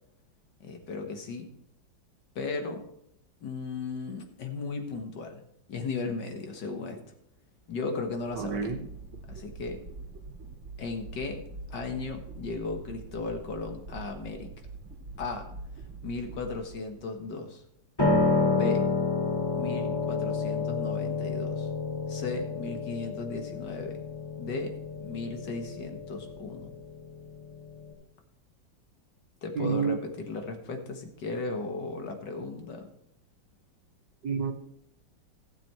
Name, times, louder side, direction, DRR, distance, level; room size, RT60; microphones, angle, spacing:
voice 1, 0.6-1.5 2.4-2.8 3.4-5.4 5.7-7.0 7.7-8.7 9.3-9.8 10.8-11.4 11.7-14.5 15.2-15.5 16.0-17.6 18.5-18.9 19.5-21.7 22.1-24.0 24.4-26.8 29.4-32.9, left 3 dB, 65° left, 2.0 m, -36 dB
sound 1, 8.2-17.3, right 3 dB, 40° right, 2.1 m, -44 dB
voice 2, 8.4-8.9 29.5-30.0 34.2-34.5, right 6 dB, 65° right, 1.6 m, -29 dB
Piano, 18.0-27.9, left 4 dB, 10° left, 2.4 m, -29 dB
15.0 x 7.2 x 4.4 m
omnidirectional pair, 2.1 m